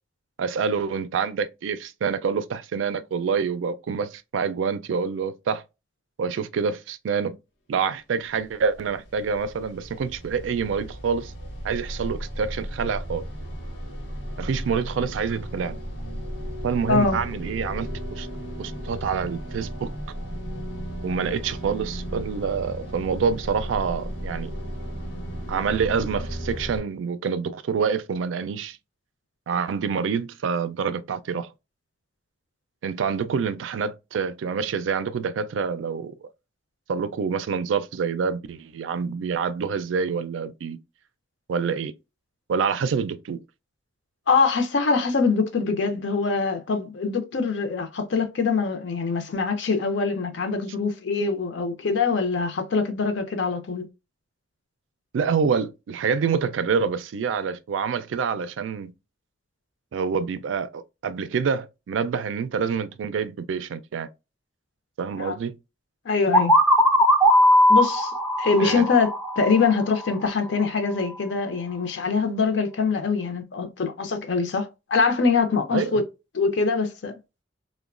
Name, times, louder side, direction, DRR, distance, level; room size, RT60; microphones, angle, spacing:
voice 1, 0.4-5.6 6.2-7.4 7.7-11.3 11.6-13.2 14.4-15.8 16.6-18.3 18.6-19.9 21.0-24.5 25.5-28.8 29.5-31.5 32.8-36.3 36.9-40.8 41.5-41.9 42.5-43.4 55.1-58.9 59.9-64.1 65.0-65.6 68.6-68.9 75.7-76.0, right 6 dB, 85° right, 0.4 m, -27 dB
sound 1, 8.3-26.8, equal, 90° left, 1.0 m, -35 dB
voice 2, 44.3-53.9 65.1-65.4 66.1-66.5 67.7-68.1 68.4-76.0 76.3-77.1, left 4 dB, 70° left, 0.5 m, -23 dB
sound 2, 66.3-70.1, equal, ahead, 0.4 m, -19 dB
3.0 x 2.1 x 2.4 m
head